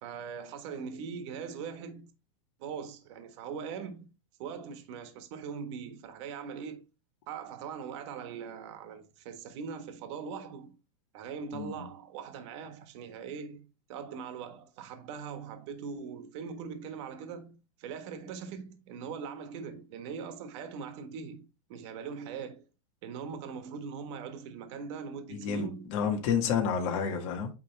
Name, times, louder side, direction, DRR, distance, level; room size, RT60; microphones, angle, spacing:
voice 1, 0.0-2.1 2.6-4.1 4.4-6.8 7.3-10.7 11.1-13.6 13.9-22.7 23.0-25.9, right 6 dB, 55° right, 1.5 m, -41 dB
voice 2, 11.5-11.8 25.3-27.5, left 7 dB, 55° left, 1.6 m, -30 dB
8.9 x 3.6 x 3.3 m
supercardioid pair, 145°, 18 cm